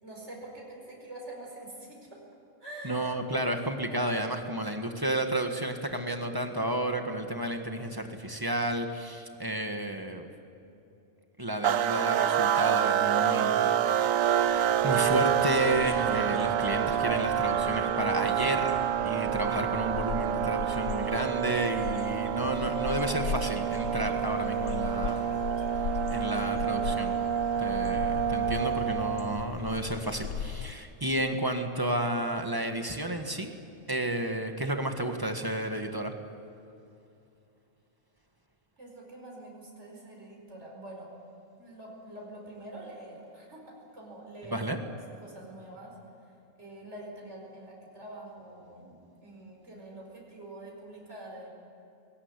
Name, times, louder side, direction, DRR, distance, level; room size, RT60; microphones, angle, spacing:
voice 1, 0.0-2.2 2.6-3.0 38.8-41.1 41.6-46.0 46.6-51.5, right 1 dB, 60° right, -2 dB, 5.1 m, -45 dB
voice 2, 2.8-10.3 11.4-25.3 26.1-27.1 27.6-33.5 33.9-36.1 44.5-44.8, right 1 dB, 15° right, 5 dB, 1.6 m, -32 dB
sound 1, 11.6-29.5, right 9 dB, 90° right, 1.2 m, -28 dB
sound 2, 14.2-30.7, left 9 dB, 85° left, 1.1 m, -39 dB
21.0 x 17.0 x 9.8 m, 2.7 s
omnidirectional pair, 1.3 m